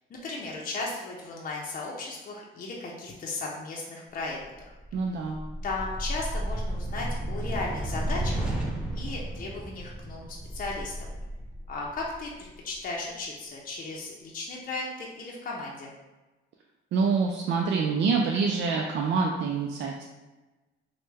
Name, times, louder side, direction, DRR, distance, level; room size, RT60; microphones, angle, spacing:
voice 1, 0.1-4.4 5.6-8.5 8.9-11.1 11.7-15.9, left 3 dB, 45° left, -3 dB, 0.6 m, -36 dB
sound 1, 4.4-12.8, right 1 dB, 5° right, 0.6 m, -33 dB
voice 2, 4.9-5.4 16.9-20.0, right 5 dB, 65° right, 0 dB, 0.4 m, -26 dB
3.2 x 2.1 x 3.3 m, 1.1 s
cardioid pair, 90°, 20 cm